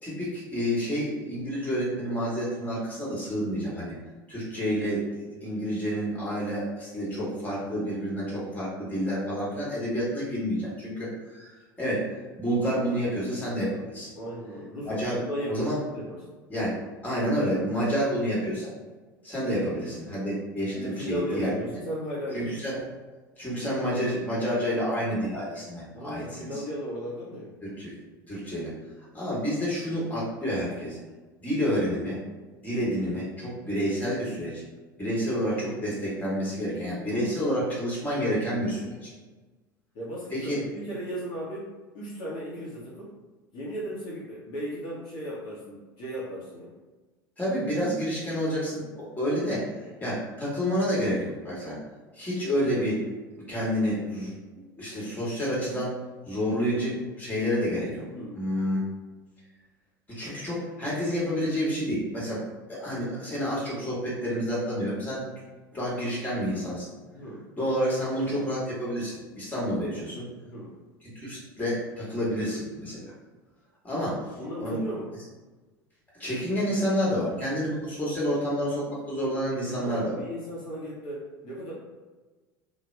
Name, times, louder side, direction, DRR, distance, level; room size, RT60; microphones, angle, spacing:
voice 1, 0.0-3.9 4.3-12.1 12.4-14.1 14.8-15.2 15.5-15.8 16.5-16.8 17.0-18.7 19.2-21.5 22.3-22.8 23.4-26.6 27.6-27.9 28.3-28.7 29.1-31.0 31.4-32.2 32.6-34.6 35.0-39.1 40.3-40.6 47.4-49.6 50.0-51.8 52.1-53.0 53.5-55.9 56.3-58.1 58.3-58.8 60.1-62.4 62.7-65.2 65.7-66.9 67.6-70.2 71.1-73.1 73.8-74.2 74.6-74.8 76.2-80.2, equal, 15° left, -6 dB, 1.4 m, -29 dB
voice 2, 14.1-16.2 20.7-22.6 25.9-27.5 36.9-37.6 39.9-41.7 41.9-43.1 43.5-46.7 58.1-58.4 67.1-67.4 70.4-70.7 74.4-75.1 79.7-81.7, equal, 50° left, -7 dB, 0.9 m, -36 dB
2.8 x 2.2 x 3.2 m, 1.3 s
figure-of-eight pair, 75°, 11 cm